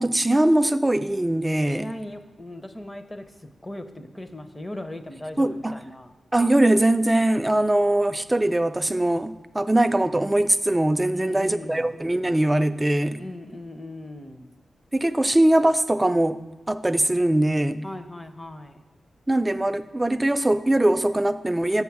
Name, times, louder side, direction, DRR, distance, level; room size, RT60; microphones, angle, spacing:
voice 1, 0.0-1.9 5.4-5.8 6.3-13.2 14.9-16.4 16.7-17.8 19.3-21.8, right 1 dB, 15° right, 11 dB, 0.3 m, -21 dB
voice 2, 1.7-6.1 11.1-11.9 13.2-14.5 17.8-18.8, left 1 dB, 20° left, 8 dB, 0.6 m, -38 dB
7.0 x 6.2 x 4.7 m, 1.1 s
cardioid pair, 80°, 0 cm